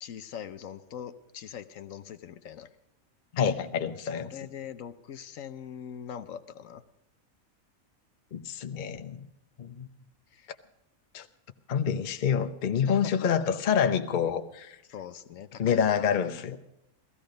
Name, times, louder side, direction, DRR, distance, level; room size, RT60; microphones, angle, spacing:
voice 1, 0.0-2.7 4.0-6.8 10.3-10.5 12.9-13.3 14.8-16.6, left 9 dB, 70° left, 1.1 m, -42 dB
voice 2, 3.3-4.3 8.3-9.3 9.6-9.9 11.1-11.3 11.7-14.8 15.6-16.6, left 7 dB, 40° left, 0.8 m, -27 dB
15.5 x 15.5 x 5.2 m
omnidirectional pair, 1.5 m